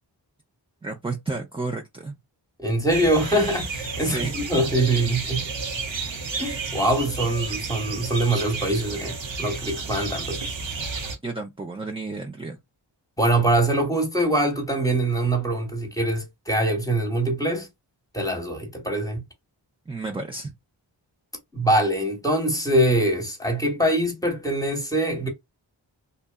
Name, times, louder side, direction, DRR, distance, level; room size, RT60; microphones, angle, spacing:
voice 1, 0.8-2.1 4.0-4.4 11.2-12.6 19.9-20.5, right 3 dB, 15° right, 0.4 m, -31 dB
voice 2, 2.6-5.4 6.4-10.4 13.2-17.7 18.1-19.2 21.5-25.3, right 1 dB, 10° left, 1.0 m, -23 dB
sound 1, 2.9-11.2, right 4 dB, 75° right, 0.7 m, -31 dB
2.7 x 2.2 x 2.2 m
cardioid pair, 45°, 46 cm